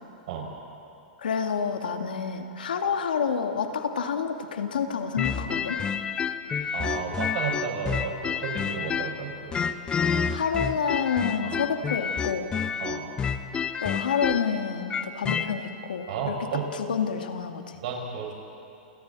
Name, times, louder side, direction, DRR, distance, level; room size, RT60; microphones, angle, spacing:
voice 1, 1.2-5.8 10.3-12.5 13.8-16.3 16.7-17.8, left 6 dB, 85° left, 5 dB, 2.0 m, -28 dB
sound 1, 5.2-9.2 9.5-15.5, left 6 dB, 20° left, 1.0 m, -29 dB
voice 2, 6.7-9.5 11.4-11.6 12.8-13.1 16.1-16.7 17.7-18.3, right 6 dB, 60° right, 1 dB, 5.6 m, -32 dB
29.0 x 27.0 x 4.1 m, 2.6 s
hypercardioid pair, 130°, 5 cm